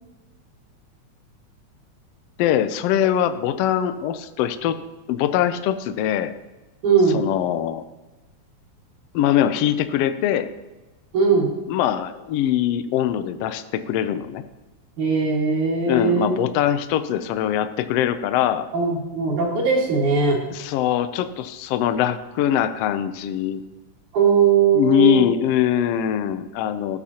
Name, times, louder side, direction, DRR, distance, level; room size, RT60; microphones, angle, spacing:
voice 1, 2.4-4.8 5.1-6.3 7.1-7.8 9.1-10.5 11.7-14.4 15.8-18.7 20.5-23.6 24.7-27.0, left 10 dB, 80° left, 11 dB, 1.4 m, -22 dB
voice 2, 6.8-7.2 11.1-11.5 15.0-16.3 18.7-20.4 24.1-25.2, right 5 dB, 85° right, -7 dB, 3.5 m, -19 dB
14.0 x 8.5 x 2.8 m, 1.1 s
omnidirectional pair, 3.4 m